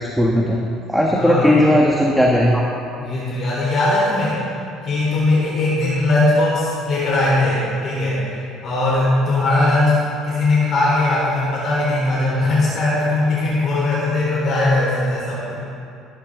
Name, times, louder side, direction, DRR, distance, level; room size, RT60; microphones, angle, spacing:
voice 1, 0.2-0.6 0.9-2.6, equal, ahead, -2 dB, 1.3 m, -16 dB
voice 2, 1.1-1.5 3.0-4.4 4.8-8.2 8.6-15.6, left 2 dB, 50° left, -6 dB, 3.8 m, -19 dB
19.0 x 11.0 x 3.8 m, 2.6 s
cardioid pair, 120°, 0 cm